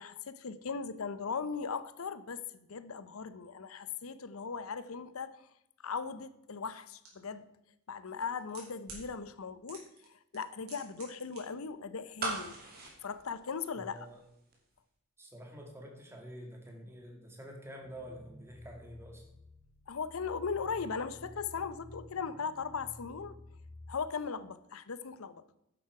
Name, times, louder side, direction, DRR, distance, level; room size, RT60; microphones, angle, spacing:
voice 1, 0.0-2.4 2.7-5.5 5.8-7.5 7.9-12.6 13.0-14.1 19.9-23.4 23.9-25.4, left 5 dB, 75° left, 0.7 m, -38 dB
sound 1, 7.0-7.1 8.1-9.0 9.7-10.1 10.3-11.4 11.7-11.8, right 4 dB, 70° right, 3.8 m, -49 dB
sound 2, 12.2-14.2 14.5-14.6, right 2 dB, 45° right, 2.5 m, -38 dB
voice 2, 13.8-14.2 15.2-19.3, equal, 10° right, 1.8 m, -48 dB
sound 3, 17.8-24.0, left 1 dB, 20° left, 2.2 m, -52 dB
10.5 x 7.9 x 4.8 m
head